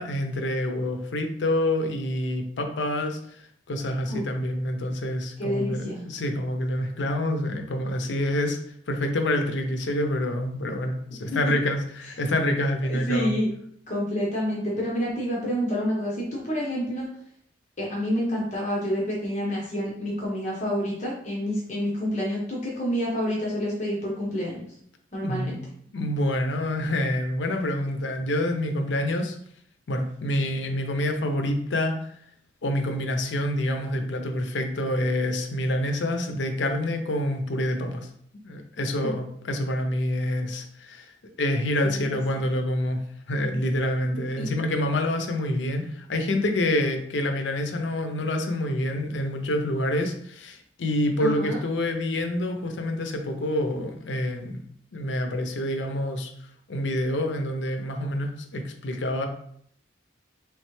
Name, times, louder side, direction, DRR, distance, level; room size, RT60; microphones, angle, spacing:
voice 1, 0.0-8.6 8.9-13.3 25.2-25.6 25.9-29.4 29.9-32.1 32.6-38.1 38.4-41.1 41.4-43.0 43.3-54.6 54.9-56.3 56.7-59.3, left 1 dB, 80° left, 5 dB, 0.6 m, -27 dB
voice 2, 5.4-6.0 11.3-11.4 12.8-13.5 13.9-17.1 17.8-24.7 25.1-25.6 39.0-39.1 41.8-42.4 44.0-44.5 51.2-51.6, equal, 40° left, -4 dB, 0.9 m, -28 dB
3.5 x 3.2 x 3.1 m, 0.65 s
head